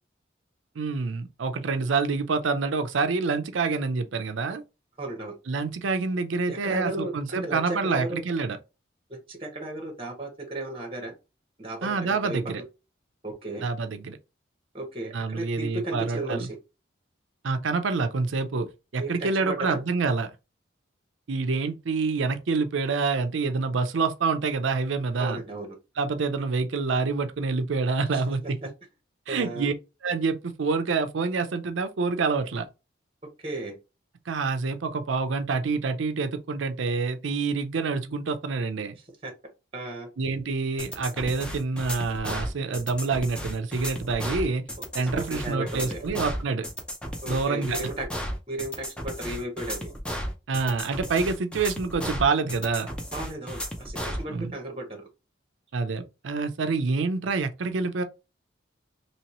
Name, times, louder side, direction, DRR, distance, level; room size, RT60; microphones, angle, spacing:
voice 1, 0.8-4.6 5.5-8.6 11.8-12.6 13.6-14.2 15.1-16.5 17.4-20.3 21.3-25.4 26.0-28.6 29.3-29.7 30.0-32.7 34.3-39.0 40.2-44.6 44.9-46.7 47.3-47.8 50.5-52.9 54.3-54.5 55.7-58.0, right 4 dB, 80° right, 0.5 m, -27 dB
voice 2, 5.0-5.4 6.5-8.2 9.3-11.1 11.6-12.0 12.2-12.6 13.2-13.7 14.7-16.6 19.0-19.8 25.2-25.8 28.1-28.2 29.3-29.7 33.4-33.8 39.2-39.3 39.7-40.1 44.8-46.0 47.2-48.1 48.5-49.9 53.1-55.1, right 1 dB, 30° right, 0.8 m, -34 dB
sound 1, 40.8-54.2, equal, 5° left, 0.5 m, -34 dB
3.0 x 2.9 x 2.9 m
head